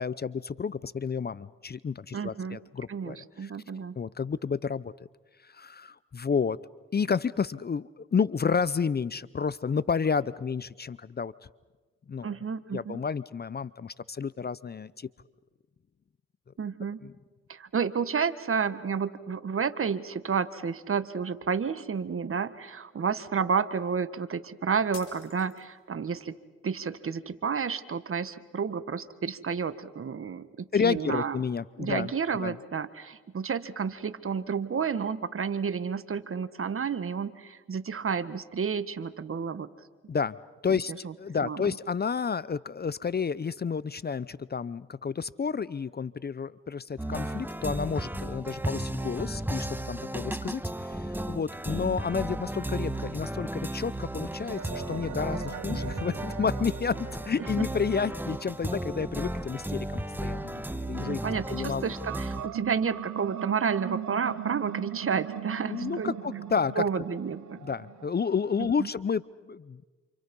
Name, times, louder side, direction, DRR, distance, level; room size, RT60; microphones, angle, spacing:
voice 1, 0.0-3.2 3.4-3.5 4.0-4.9 5.6-6.6 6.9-11.3 12.1-12.3 12.7-15.1 17.0-17.1 30.7-32.6 40.1-40.4 40.6-61.2 61.5-61.8 65.7-66.8 67.6-69.8, left 6 dB, 35° left, 19 dB, 0.7 m, -31 dB
voice 2, 2.1-2.6 2.9-4.0 12.2-13.0 16.6-17.0 17.5-26.3 26.6-31.4 31.8-39.7 40.7-41.1 41.4-41.8 57.4-57.7 61.0-66.2 66.7-67.6 68.6-68.9, right 6 dB, 45° right, 13 dB, 1.6 m, -31 dB
sound 1, 24.9-26.0, left 6 dB, 55° left, 4.3 m, -48 dB
sound 2, 47.0-62.5, right 1 dB, 5° right, 1.5 m, -34 dB
sound 3, 54.4-60.4 60.9-69.0, right 11 dB, 75° right, 1.3 m, -40 dB
28.5 x 28.5 x 5.4 m, 1.3 s
supercardioid pair, 55°, 30 cm